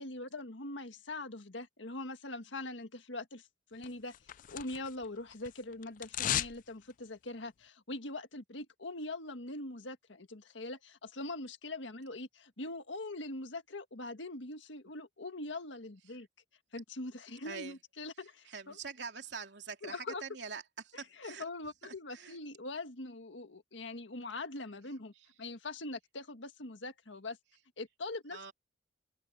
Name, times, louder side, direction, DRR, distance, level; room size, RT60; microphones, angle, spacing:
voice 1, 0.0-4.1 4.5-16.3 16.7-18.8 19.8-20.2 21.2-25.1 25.4-27.4 27.8-28.5, left 2 dB, 80° left, 1.8 m, -42 dB
sound 1, 3.8-5.1 5.3-6.6 6.9-7.0, left 11 dB, 45° left, 0.3 m, -36 dB
voice 2, 17.4-17.8 18.4-21.4 21.8-22.4 28.3-28.5, right 5 dB, 65° right, 3.2 m, -45 dB
open air
head